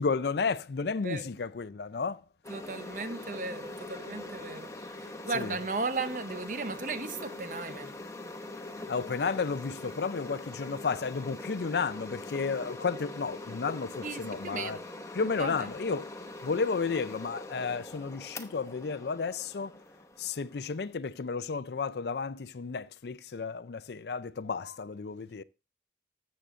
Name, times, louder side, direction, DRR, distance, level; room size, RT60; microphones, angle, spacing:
voice 1, 0.0-2.2 5.3-5.6 8.9-14.8 15.1-16.1 16.4-19.8 20.2-25.4, left 5 dB, 70° left, 0.5 m, -32 dB
Boiling and Steam, 2.4-20.9, left 2 dB, 15° left, 0.8 m, -43 dB
voice 2, 2.5-8.0 14.0-14.9 15.2-15.6, right 4 dB, 45° right, 0.7 m, -36 dB
13.5 x 7.6 x 2.5 m
head